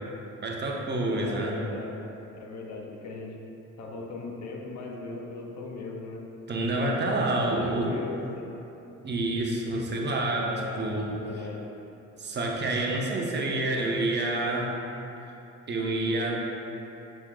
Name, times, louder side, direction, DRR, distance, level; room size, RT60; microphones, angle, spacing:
voice 1, 0.4-1.6 6.5-7.9 9.0-11.2 12.2-14.7 15.7-16.5, right 2 dB, 35° right, -1 dB, 0.6 m, -28 dB
voice 2, 1.1-1.9 2.3-3.4 3.8-6.2 6.7-8.5 10.4-10.8 11.2-11.6, left 3 dB, 65° left, -1 dB, 0.7 m, -38 dB
5.9 x 2.0 x 3.6 m, 2.9 s
cardioid pair, 90°, 30 cm